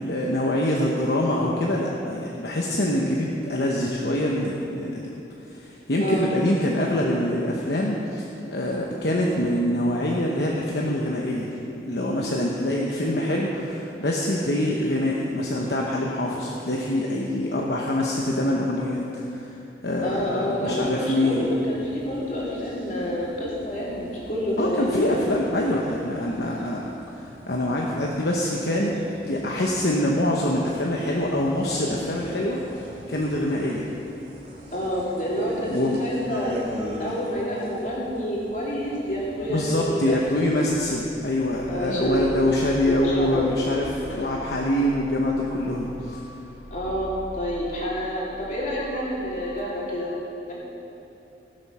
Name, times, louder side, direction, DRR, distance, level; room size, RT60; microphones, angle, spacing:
voice 1, 0.0-5.1 5.5-11.5 11.9-19.5 19.8-21.5 24.6-28.9 29.2-32.6 33.1-33.9 35.4-36.0 39.5-46.2, left 1 dB, 65° left, -2 dB, 1.0 m, -25 dB
voice 2, 6.0-6.3 20.0-25.1 34.7-36.6 37.0-40.5 41.7-42.3 42.8-43.7 46.7-50.1 50.4-50.5, equal, 45° left, -6 dB, 3.1 m, -28 dB
sound 1, 21.3-40.8, left 1 dB, 35° right, 3.0 m, -42 dB
sound 2, 40.7-50.0, equal, 90° left, 2.0 m, -42 dB
17.0 x 7.8 x 5.7 m, 2.9 s
head